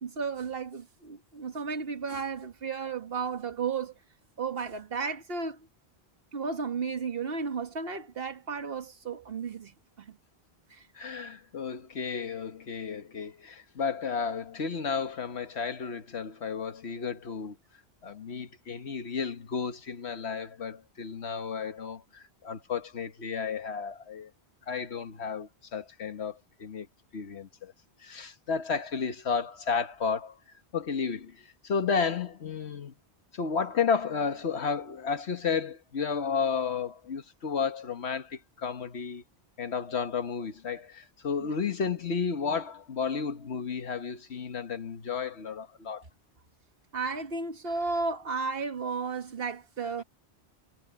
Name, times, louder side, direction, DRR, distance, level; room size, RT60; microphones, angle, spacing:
voice 1, 0.0-3.9 4.4-5.6 6.3-9.7 10.0-10.1 10.7-10.8 41.4-41.5 46.9-50.0, right 5 dB, 60° right, 1.8 m, -33 dB
voice 2, 10.9-17.6 18.0-24.3 24.7-26.9 27.1-27.7 28.0-30.4 30.7-31.4 31.6-32.9 33.3-39.2 39.6-46.0 50.0-50.1, left 6 dB, 80° left, 1.5 m, -32 dB
omnidirectional pair, 1.1 m